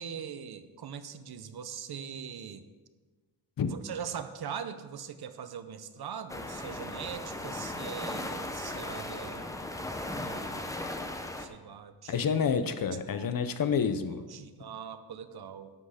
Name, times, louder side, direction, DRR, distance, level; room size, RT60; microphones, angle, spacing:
voice 1, 0.0-2.6 3.6-9.5 10.1-10.8 11.4-12.3 13.1-13.3 14.3-15.7, right 7 dB, 60° right, 11 dB, 0.7 m, -41 dB
sound 1, 6.3-11.5, left 1 dB, 10° left, 0.6 m, -37 dB
voice 2, 12.1-14.2, left 6 dB, 50° left, 10 dB, 0.7 m, -28 dB
12.0 x 7.8 x 4.9 m, 1.3 s
wide cardioid pair, 175°, 43 cm